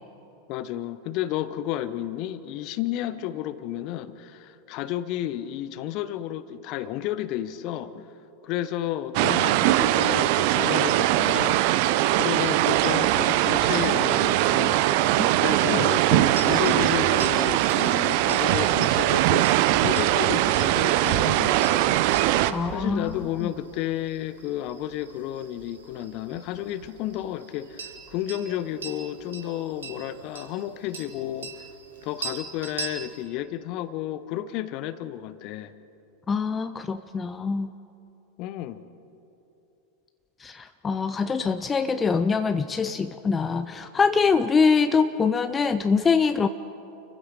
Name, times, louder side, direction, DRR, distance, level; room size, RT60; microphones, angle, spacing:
voice 1, 0.5-8.1 8.4-11.7 12.2-14.8 15.4-22.0 22.7-31.7 32.0-35.7 38.4-38.9, left 12 dB, 45° left, 0.9 m, -32 dB
sound 1, 9.1-22.5, right 15 dB, 50° right, 0.7 m, -21 dB
sound 2, 16.3-33.2, right 5 dB, 70° right, 2.3 m, -41 dB
voice 2, 22.5-23.2 36.3-37.7 40.4-46.5, left 5 dB, 20° left, 0.6 m, -24 dB
29.5 x 15.5 x 6.6 m
figure-of-eight pair, 85°, 0 cm